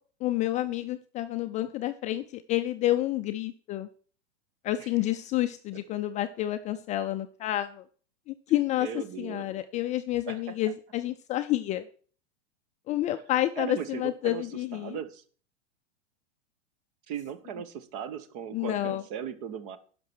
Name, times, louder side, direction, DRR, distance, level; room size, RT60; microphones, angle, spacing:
voice 1, 0.2-3.9 4.6-7.8 8.3-11.9 12.9-15.0 18.5-19.0, left 14 dB, 20° left, 9 dB, 0.4 m, -29 dB
voice 2, 8.8-9.5 10.3-10.4 13.6-14.4 14.7-15.2 17.1-19.8, right 8 dB, 45° right, 14 dB, 1.3 m, -37 dB
11.0 x 5.9 x 6.2 m, 0.43 s
hypercardioid pair, 115°, 35 cm